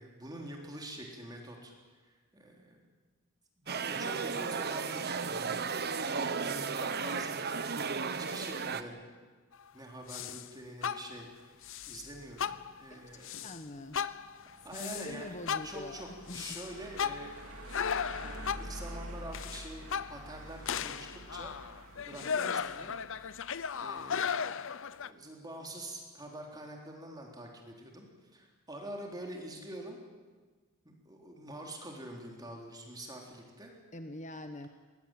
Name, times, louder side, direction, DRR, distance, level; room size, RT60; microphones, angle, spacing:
voice 1, 0.0-2.8 3.6-5.7 6.0-7.6 8.1-9.0 9.7-11.5 11.9-13.4 14.6-16.1 16.3-17.3 18.2-21.5 22.1-23.0 23.3-23.4 23.7-30.0 30.8-33.7, right 1 dB, 20° right, 0 dB, 3.7 m, -46 dB
sound 1, 3.7-8.8, right 5 dB, 50° right, 1.2 m, -34 dB
sound 2, 10.1-10.5 10.8-11.3 11.6-12.1 12.4-12.9 13.2-13.6 13.9-15.1 15.5-18.8 19.3-20.4 20.7-25.1, left 7 dB, 65° left, 0.7 m, -36 dB
sound 3, 11.6-23.8, right 1 dB, 75° right, 2.7 m, -49 dB
voice 2, 12.9-14.0 14.7-16.4 33.9-34.7, left 1 dB, 35° left, 7 dB, 1.2 m, -44 dB
22.0 x 21.0 x 9.2 m, 1.4 s
head